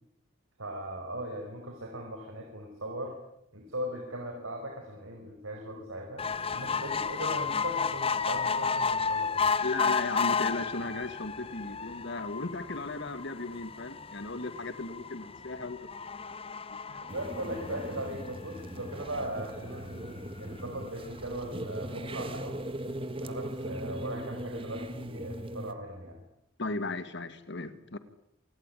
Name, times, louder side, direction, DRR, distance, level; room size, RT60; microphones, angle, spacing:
voice 1, 0.6-3.2 3.5-6.2 6.5-9.5 16.9-22.6 23.2-26.2, right 1 dB, 90° right, 2 dB, 5.6 m, -39 dB
sound 1, 6.2-18.8 19.3-19.4 19.7-19.8 20.1-20.2, left 5 dB, 30° left, 1.1 m, -32 dB
voice 2, 9.6-15.8 16.1-17.0 26.6-28.0, left 2 dB, 60° left, 12 dB, 2.0 m, -36 dB
sound 2, 17.1-25.7, right 1 dB, 25° right, 1.7 m, -39 dB
27.5 x 18.5 x 10.0 m, 0.79 s
head